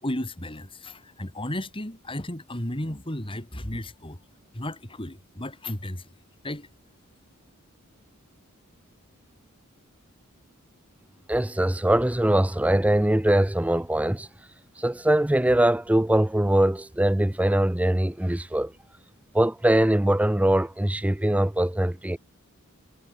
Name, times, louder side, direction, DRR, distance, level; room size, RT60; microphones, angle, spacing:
voice 1, 0.0-4.2 4.5-6.0 6.4-6.7, left 1 dB, 25° left, 3.1 m, -34 dB
voice 2, 11.3-14.3 14.8-18.7 19.3-22.2, right 1 dB, 5° right, 0.5 m, -22 dB
head